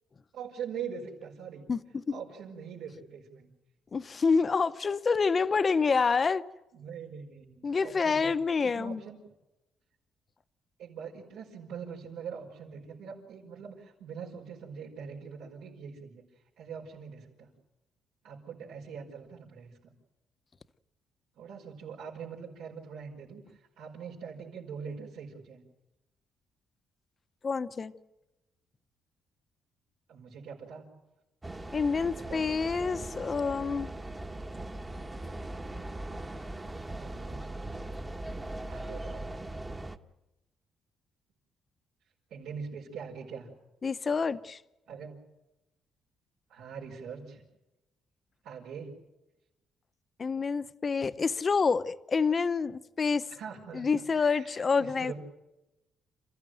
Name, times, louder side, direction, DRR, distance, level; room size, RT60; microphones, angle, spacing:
voice 1, 0.3-1.7 2.1-3.5 6.7-8.3 8.6-9.2 10.8-16.2 16.6-17.5 18.2-19.7 21.4-25.6 30.1-30.9 32.0-32.8 36.9-37.4 38.7-39.3 42.3-43.5 44.9-45.1 46.5-47.4 48.4-48.9 53.3-55.1, right 6 dB, 85° right, 5.3 m, -43 dB
voice 2, 1.7-2.2 3.9-6.4 7.6-9.0 27.4-27.9 31.7-33.9 43.8-44.6 50.2-53.3 53.7-55.1, left 5 dB, 25° left, 0.8 m, -27 dB
sound 1, 31.4-40.0, right 2 dB, 15° right, 1.1 m, -39 dB
28.5 x 15.5 x 9.1 m
cardioid pair, 150°, 0 cm